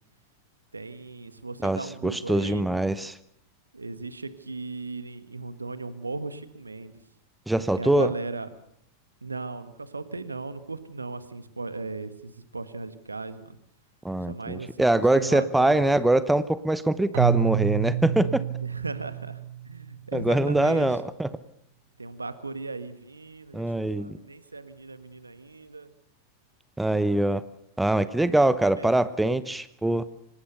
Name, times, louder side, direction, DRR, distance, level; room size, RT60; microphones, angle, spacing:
voice 1, 0.7-2.6 3.7-6.9 7.8-8.5 9.2-13.6 14.3-16.2 18.6-19.4 19.7-20.9 22.0-25.9 28.2-28.4 28.7-29.3, right 3 dB, 80° right, 12 dB, 1.5 m, -37 dB
voice 2, 1.6-3.2 7.5-8.1 14.0-18.4 20.1-21.3 23.5-24.2 26.8-27.4 27.8-30.0, right 1 dB, 5° right, 16 dB, 0.9 m, -23 dB
Keyboard (musical), 17.1-20.1, right 10 dB, 55° right, 1.8 m, -28 dB
25.0 x 19.0 x 6.8 m, 0.72 s
figure-of-eight pair, 90°, 0 cm